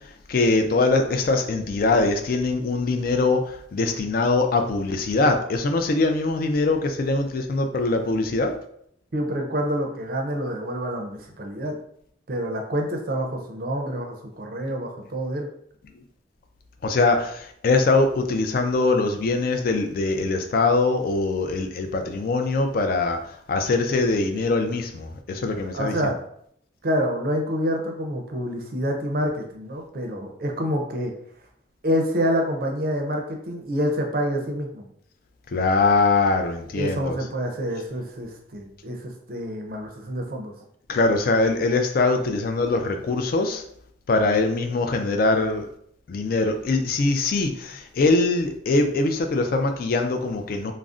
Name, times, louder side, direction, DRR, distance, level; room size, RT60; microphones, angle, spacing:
voice 1, 0.3-8.5 16.8-23.2 23.5-26.0 35.5-37.2 40.9-43.6 44.1-45.7 46.1-50.7, left 3 dB, 50° left, 5 dB, 0.3 m, -22 dB
voice 2, 9.1-11.8 12.3-15.5 25.7-26.2 26.8-31.1 31.8-34.8 36.7-40.5, equal, 50° right, 3 dB, 0.5 m, -27 dB
2.5 x 2.0 x 3.5 m, 0.69 s
head